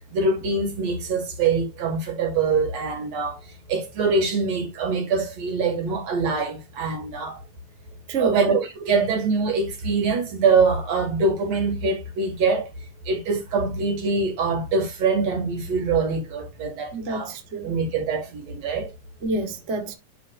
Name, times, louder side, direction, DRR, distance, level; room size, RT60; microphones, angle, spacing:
voice 1, 0.1-3.4 3.7-7.4 8.2-12.7 13.1-17.3 17.6-18.9, right 4 dB, 60° right, 3.1 m, -24 dB
voice 2, 16.9-17.7 19.2-19.9, right 3 dB, 40° right, 1.0 m, -27 dB
11.5 x 5.0 x 2.5 m
omnidirectional pair, 3.6 m